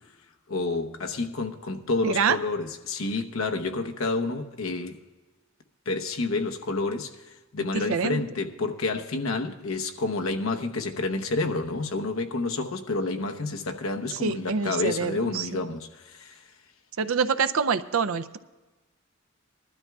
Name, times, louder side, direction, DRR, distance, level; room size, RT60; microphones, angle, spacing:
voice 1, 0.5-5.0 5.9-7.2 7.5-16.4, left 3 dB, 90° left, 0.9 m, -29 dB
voice 2, 2.0-2.4 7.7-8.2 14.2-15.6 17.0-18.4, right 5 dB, 85° right, 0.5 m, -26 dB
20.5 x 12.5 x 2.4 m
head